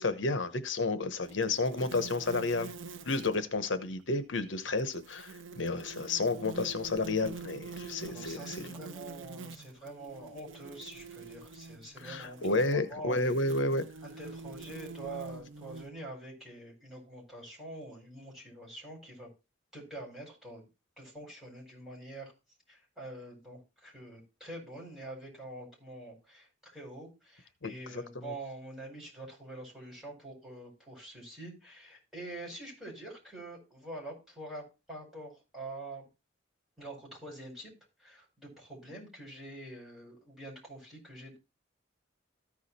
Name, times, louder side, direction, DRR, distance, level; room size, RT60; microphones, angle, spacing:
voice 1, 0.0-2.7 3.1-8.7 12.0-13.8 27.6-28.3, left 3 dB, 70° left, 1.0 m, -31 dB
sound 1, 1.2-3.5 4.8-15.9, right 4 dB, 80° right, 0.7 m, -46 dB
voice 2, 8.1-13.2 14.0-19.3 19.7-20.7 21.0-22.3 22.7-36.1 36.8-37.7 38.0-41.4, right 1 dB, ahead, 5.2 m, -46 dB
14.0 x 4.9 x 4.2 m
head